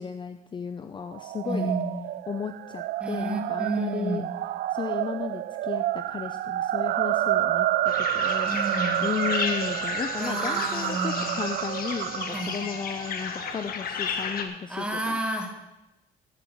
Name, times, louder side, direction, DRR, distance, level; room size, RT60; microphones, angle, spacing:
voice 1, 0.0-1.7 2.3-4.2 4.7-8.6 9.0-15.2, left 7 dB, 30° left, 9 dB, 0.6 m, -34 dB
sound 1, 1.1-13.5, right 13 dB, 65° right, 0.5 m, -29 dB
voice 2, 1.4-2.1 3.0-4.3 8.5-9.1 10.2-11.4 12.3-12.6 14.7-15.7, right 1 dB, 5° right, 2 dB, 2.0 m, -31 dB
sound 2, 7.9-14.4, left 6 dB, 60° left, 1.5 m, -33 dB
9.8 x 7.8 x 8.5 m, 0.98 s
cardioid pair, 110°, 17 cm